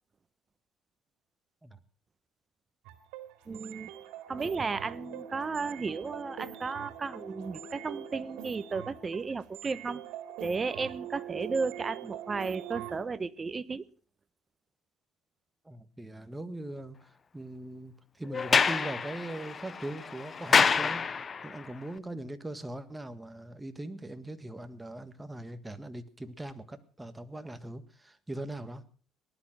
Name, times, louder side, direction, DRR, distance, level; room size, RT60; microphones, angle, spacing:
sound 1, 2.8-13.0, right 10 dB, 90° right, 2.5 m, -43 dB
voice 1, 3.5-3.9 4.3-10.0 10.4-13.8, right 4 dB, 25° right, 0.9 m, -34 dB
voice 2, 15.6-21.0 21.4-28.8, right 1 dB, 10° right, 1.6 m, -41 dB
Sliding door, 18.3-21.6, left 5 dB, 30° left, 0.8 m, -27 dB
19.0 x 11.5 x 6.1 m
cardioid pair, 115°, 0 cm